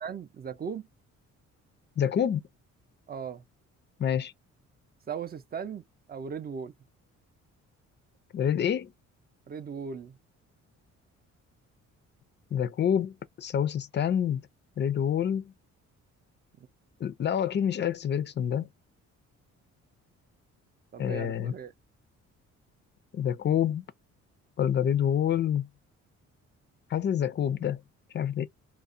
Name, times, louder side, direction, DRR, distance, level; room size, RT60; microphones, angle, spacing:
voice 1, 0.0-0.9 3.1-3.4 5.1-6.7 9.5-10.2 16.6-16.7 20.9-21.7, right 6 dB, 30° right, 0.5 m, -38 dB
voice 2, 2.0-2.4 4.0-4.3 8.3-8.9 12.5-14.4 14.8-15.5 17.0-18.7 21.0-21.5 23.1-23.8 24.6-25.7 26.9-27.8 28.1-28.5, left 9 dB, 40° left, 0.4 m, -27 dB
2.4 x 2.1 x 2.4 m
cardioid pair, 90°, 30 cm